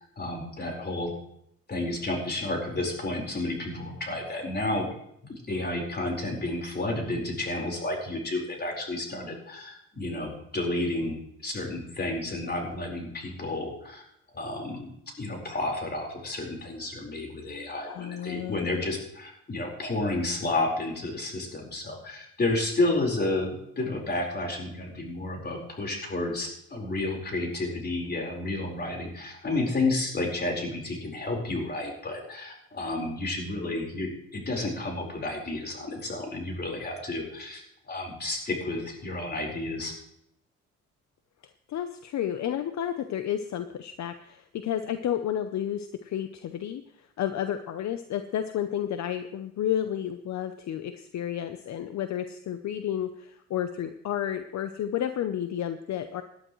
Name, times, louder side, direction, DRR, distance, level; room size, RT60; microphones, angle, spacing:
voice 1, 0.2-1.1 1.7-4.9 5.3-14.0 14.3-39.9, left 2 dB, 35° left, 0 dB, 4.5 m, -31 dB
voice 2, 17.8-18.9 41.7-56.2, left 10 dB, 65° left, 9 dB, 0.8 m, -31 dB
18.0 x 11.5 x 3.2 m, 0.75 s
cardioid pair, 90°, 30 cm